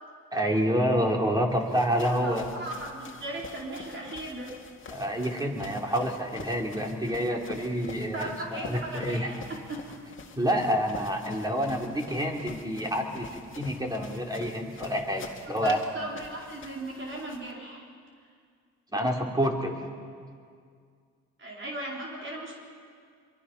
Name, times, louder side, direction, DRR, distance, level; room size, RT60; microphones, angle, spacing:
voice 1, 0.3-2.4 4.9-9.3 10.4-15.8 18.9-19.8, equal, 15° right, 1 dB, 3.3 m, -28 dB
sound 1, 1.5-17.5, left 5 dB, 40° left, 2.1 m, -46 dB
voice 2, 2.2-4.6 8.1-9.3 9.7-9.8 15.6-17.8 21.4-22.6, right 1 dB, 40° right, -2 dB, 4.4 m, -37 dB
24.5 x 23.0 x 5.9 m, 2.2 s
cardioid pair, 90°, 30 cm